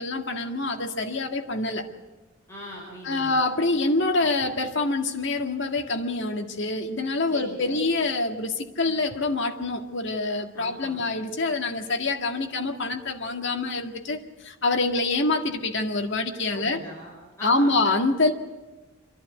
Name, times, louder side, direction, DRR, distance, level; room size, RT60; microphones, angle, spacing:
voice 1, 0.0-1.9 3.0-16.8 17.4-18.3, left 2 dB, 60° left, 4 dB, 2.0 m, -26 dB
voice 2, 2.5-3.4 7.3-7.8 10.5-11.1 16.5-17.9, equal, 15° left, -3 dB, 5.2 m, -41 dB
27.5 x 11.5 x 9.5 m, 1.2 s
head